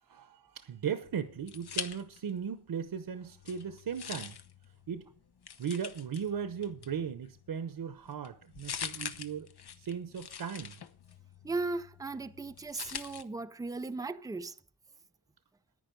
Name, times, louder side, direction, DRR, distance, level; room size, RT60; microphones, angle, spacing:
voice 1, 0.1-4.4 4.9-5.1 5.6-9.5 9.8-10.7, right 7 dB, 70° right, 0.9 m, -37 dB
sound 1, 1.0-2.5 2.8-13.2, left 7 dB, 75° left, 0.9 m, -45 dB
voice 2, 11.4-14.6, right 3 dB, 10° right, 0.4 m, -37 dB
10.5 x 9.9 x 5.2 m
wide cardioid pair, 135°, 39 cm